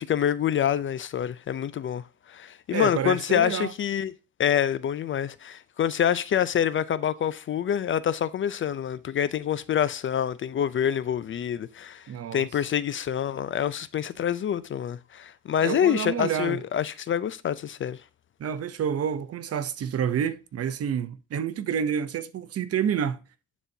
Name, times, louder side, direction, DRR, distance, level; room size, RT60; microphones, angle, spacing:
voice 1, 0.0-2.0 2.3-4.1 4.4-12.0 12.3-18.0, left 9 dB, 40° left, 0.4 m, -26 dB
voice 2, 2.7-3.7 12.1-12.4 15.6-16.6 18.4-23.2, right 8 dB, 50° right, 0.8 m, -28 dB
10.0 x 4.2 x 2.7 m
cardioid pair, 95°, 32 cm